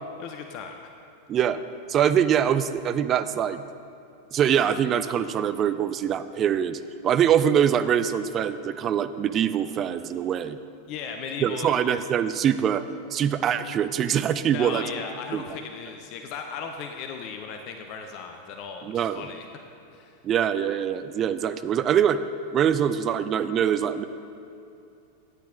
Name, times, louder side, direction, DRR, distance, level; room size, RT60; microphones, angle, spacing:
voice 1, 0.2-0.9 10.9-11.7 14.5-19.5 19.9-20.2, left 6 dB, 40° left, 4 dB, 0.6 m, -37 dB
voice 2, 1.9-3.6 4.3-10.6 11.4-12.8 13.1-14.8 15.3-15.4 18.8-19.3 20.2-22.2 22.5-24.0, right 9 dB, 30° right, 12 dB, 0.4 m, -23 dB
9.2 x 9.1 x 3.7 m, 2.6 s
figure-of-eight pair, 90°, 0 cm